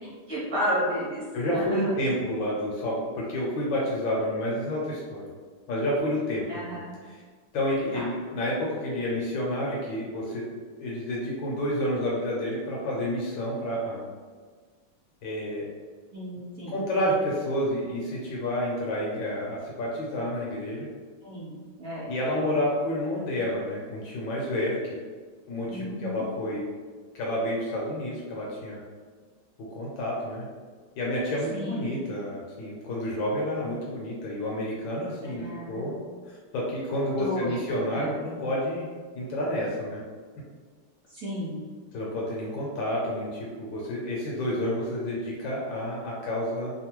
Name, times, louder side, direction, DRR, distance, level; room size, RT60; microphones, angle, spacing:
voice 1, 0.0-1.2 1.5-1.9 6.5-6.9 7.9-8.1 16.1-16.8 21.2-22.1 25.7-26.2 31.5-31.9 35.2-36.0 37.2-37.6 37.9-38.2 41.1-41.6, equal, 55° right, -8 dB, 1.3 m, -33 dB
voice 2, 1.3-5.3 5.7-6.8 7.1-7.2 7.5-10.5 10.8-14.0 15.2-15.7 16.7-20.9 22.1-25.0 25.5-26.6 27.1-28.8 29.6-30.5 31.0-35.9 36.3-38.9 39.1-40.0 41.9-46.7, left 1 dB, 70° left, -4 dB, 1.3 m, -29 dB
3.4 x 2.2 x 2.9 m, 1.5 s
omnidirectional pair, 2.4 m